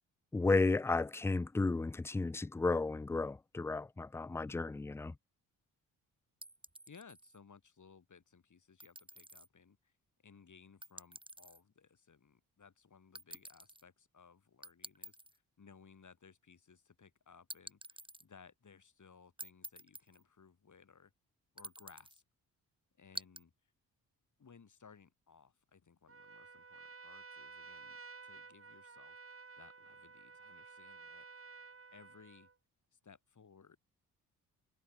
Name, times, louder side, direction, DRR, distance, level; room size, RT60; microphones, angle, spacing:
voice 1, 0.3-5.1, left 3 dB, 5° left, 0.3 m, -33 dB
sound 1, 6.4-7.4 8.8-9.5 10.8-11.6 13.1-13.8 14.6-15.4 17.5-18.2 19.4-20.2 21.6-22.2 23.1-23.4, right 1 dB, 10° right, 4.8 m, -49 dB
voice 2, 6.9-9.9 10.2-21.1 21.5-22.2 23.0-23.7 24.4-29.2 29.6-31.4 31.9-32.5 32.9-33.8, left 6 dB, 45° left, 7.7 m, -61 dB
Trumpet, 26.1-32.5, right 4 dB, 35° right, 3.0 m, -53 dB
hypercardioid pair, 45°, 40 cm